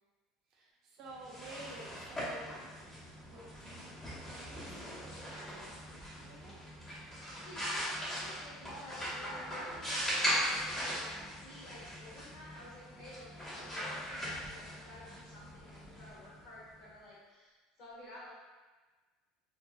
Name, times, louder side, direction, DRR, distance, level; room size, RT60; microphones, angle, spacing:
voice 1, 0.5-2.6 3.2-6.6, right 2 dB, 45° right, -2 dB, 0.5 m, -52 dB
sound 1, 1.1-16.8, equal, 15° left, 0.9 m, -40 dB
voice 2, 1.2-1.5 7.4-18.3, left 1 dB, 45° left, -6 dB, 1.1 m, -52 dB
3.3 x 3.1 x 2.3 m, 1.3 s
cardioid pair, 175°, 0 cm